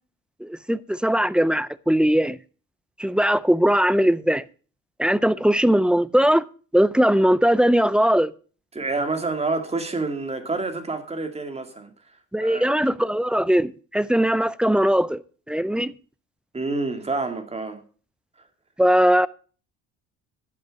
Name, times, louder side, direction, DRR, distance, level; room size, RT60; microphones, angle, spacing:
voice 1, 0.4-2.4 3.0-4.4 5.0-6.5 6.7-8.3 12.3-15.2 15.5-15.9 18.8-19.3, equal, 5° right, 0.4 m, -20 dB
voice 2, 8.7-11.9 12.4-12.7 16.5-17.8, right 3 dB, 20° right, 2.1 m, -28 dB
11.0 x 8.2 x 5.2 m
cardioid pair, 100°, 32 cm